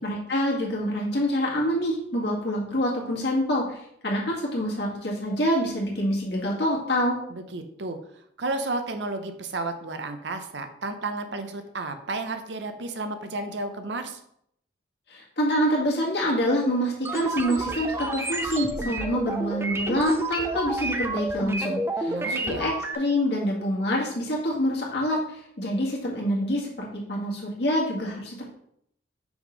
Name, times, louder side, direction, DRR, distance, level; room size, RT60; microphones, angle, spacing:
voice 1, 0.0-7.2 15.1-28.5, equal, 60° left, -3 dB, 2.0 m, -26 dB
voice 2, 7.3-8.0 8.4-14.2 22.1-22.6, right 2 dB, 70° right, 7 dB, 0.7 m, -32 dB
sound 1, 17.1-23.0, right 2 dB, 15° right, 0.4 m, -30 dB
6.1 x 3.7 x 5.1 m, 0.71 s
head